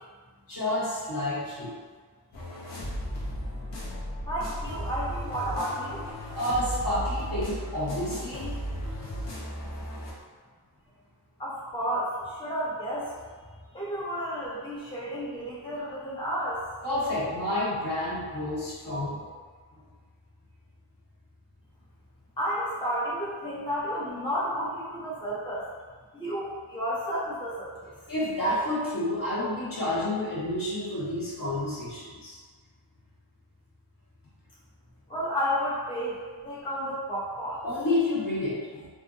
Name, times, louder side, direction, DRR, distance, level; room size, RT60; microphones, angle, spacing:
voice 1, 0.5-1.8 3.7-3.8 6.3-8.5 16.8-19.2 28.1-32.4 37.6-38.9, left 1 dB, 50° left, -8 dB, 1.2 m, -29 dB
sound 1, 2.3-10.1, equal, 80° left, 0.9 m, -35 dB
voice 2, 4.3-6.1 11.4-13.4 13.7-16.6 22.4-25.7 26.1-27.9 35.1-37.6, equal, 10° left, -8 dB, 0.6 m, -32 dB
2.6 x 2.4 x 2.6 m, 1.5 s
cardioid pair, 55°, 45 cm